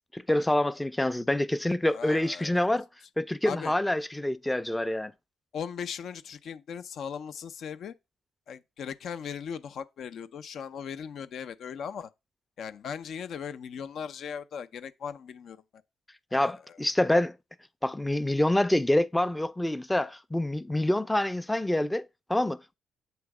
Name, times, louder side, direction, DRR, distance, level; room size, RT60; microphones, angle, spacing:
voice 1, 0.1-2.9 3.2-5.1 16.3-17.3 17.8-22.7, left 1 dB, 10° left, 0.5 m, -26 dB
voice 2, 1.9-2.7 3.4-3.7 5.5-7.9 8.5-12.1 12.6-15.6 16.3-16.8, left 7 dB, 65° left, 0.6 m, -38 dB
8.0 x 3.1 x 4.8 m
cardioid pair, 90°, 0 cm